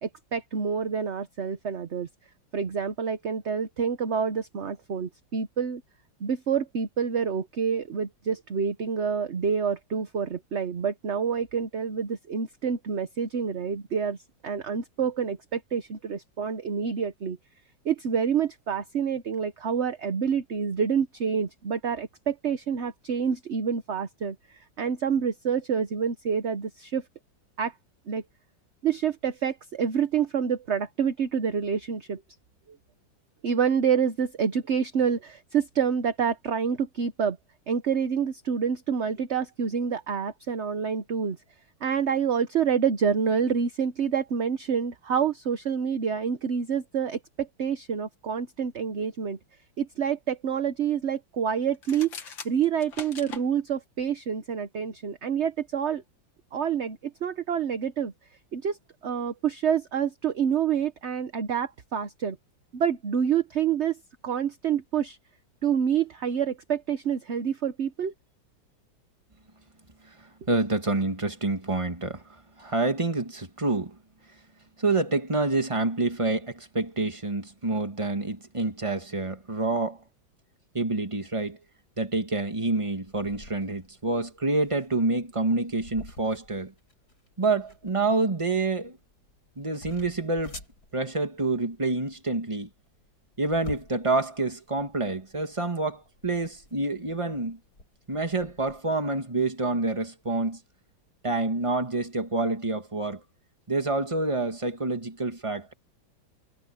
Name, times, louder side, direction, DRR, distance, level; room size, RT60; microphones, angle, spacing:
voice 1, 0.0-2.1 2.5-5.8 6.2-14.2 14.4-17.4 17.8-27.0 27.6-27.7 28.1-28.2 28.8-32.2 33.4-37.4 37.7-41.4 41.8-49.4 49.8-56.0 56.5-58.1 58.5-58.8 59.0-62.4 62.7-64.0 64.2-65.2 65.6-68.1, right 7 dB, 45° right, 1.0 m, -27 dB
sound 1, 51.7-53.5, left 6 dB, 75° left, 2.6 m, -41 dB
voice 2, 70.5-72.2 72.6-74.0 74.8-80.0 80.7-81.6 82.0-86.7 87.4-89.0 89.6-90.6 90.9-92.7 93.4-97.6 98.1-100.6 101.2-103.2 103.7-105.7, right 3 dB, 15° right, 1.9 m, -27 dB
sound 2, 83.1-98.8, left 1 dB, 50° left, 8.0 m, -49 dB
omnidirectional pair, 2.1 m